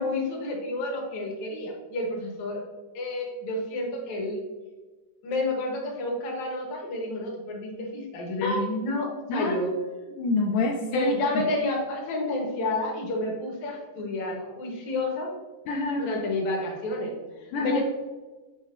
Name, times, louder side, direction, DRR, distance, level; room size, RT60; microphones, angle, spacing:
voice 1, 0.0-2.6 2.9-4.4 5.2-9.7 10.9-15.3 16.0-17.8, left 2 dB, 65° left, 0 dB, 2.3 m, -30 dB
voice 2, 10.2-11.1 15.7-16.1 17.5-17.8, left 3 dB, 80° left, -1 dB, 2.1 m, -26 dB
8.2 x 4.8 x 2.6 m, 1.3 s
omnidirectional pair, 3.8 m